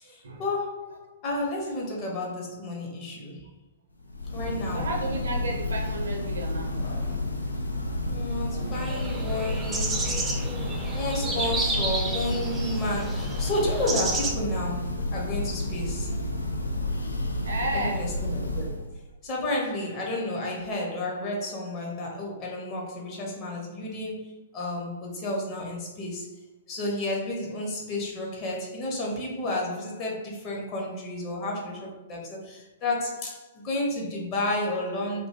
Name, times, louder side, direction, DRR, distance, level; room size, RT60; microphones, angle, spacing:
voice 1, 0.0-3.5 4.3-4.9 8.1-10.4 10.9-16.2 17.7-18.9 19.2-26.3 26.7-35.3, left 1 dB, 30° left, -2 dB, 0.7 m, -32 dB
Church bell, 4.0-19.0, left 1 dB, 80° left, 0.3 m, -30 dB
voice 2, 4.7-6.7 16.8-17.0 17.4-18.1, right 1 dB, 65° right, 1 dB, 0.6 m, -32 dB
sound 1, 5.0-16.3, right 1 dB, 55° left, 1.0 m, -47 dB
sound 2, 8.7-14.3, right 2 dB, 15° right, 0.4 m, -31 dB
2.6 x 2.2 x 2.7 m, 0.95 s
figure-of-eight pair, 110°, 0 cm